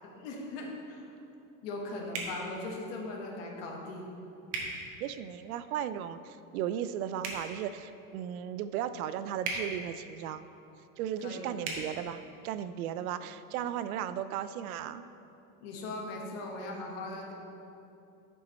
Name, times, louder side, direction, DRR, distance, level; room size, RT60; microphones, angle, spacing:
voice 1, 0.1-1.1 1.6-4.1 11.2-11.5 15.6-17.3, left 2 dB, 45° left, 0 dB, 1.3 m, -39 dB
sound 1, 2.1-2.3 4.5-4.7 7.2-7.4 9.4-9.6 11.6-11.8, right 4 dB, 40° right, 1.3 m, -35 dB
voice 2, 5.0-10.4 11.0-15.0, right 10 dB, 75° right, 13 dB, 0.5 m, -36 dB
10.5 x 5.6 x 4.2 m, 2.8 s
supercardioid pair, 175°, 44 cm